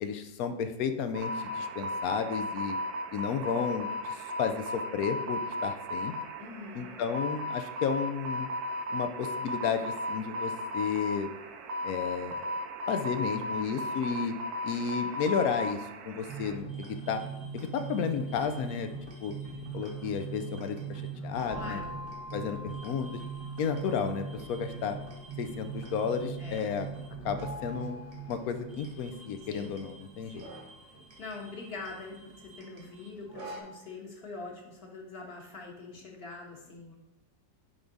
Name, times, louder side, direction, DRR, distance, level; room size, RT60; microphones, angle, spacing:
voice 1, 0.0-2.8 3.1-6.1 6.7-8.5 8.9-11.3 11.8-12.4 12.9-14.3 14.6-17.2 17.5-18.9 19.2-19.3 19.7-21.8 22.3-23.2 23.6-25.0 25.4-26.9 27.2-28.0 28.3-30.4, left 6 dB, 70° left, 9 dB, 0.9 m, -32 dB
sound 1, 1.1-16.6, left 1 dB, 65° right, 1.1 m, -36 dB
voice 2, 6.4-7.0 21.5-21.9 26.4-26.7 29.4-29.7 30.3-30.6 31.2-37.0, left 3 dB, 40° left, -1 dB, 1.3 m, -44 dB
sound 2, 16.3-33.6, right 5 dB, 35° right, 1.2 m, -41 dB
sound 3, 21.5-29.3, equal, 20° left, 0.6 m, -49 dB
9.7 x 3.5 x 4.0 m, 0.89 s
omnidirectional pair, 1.9 m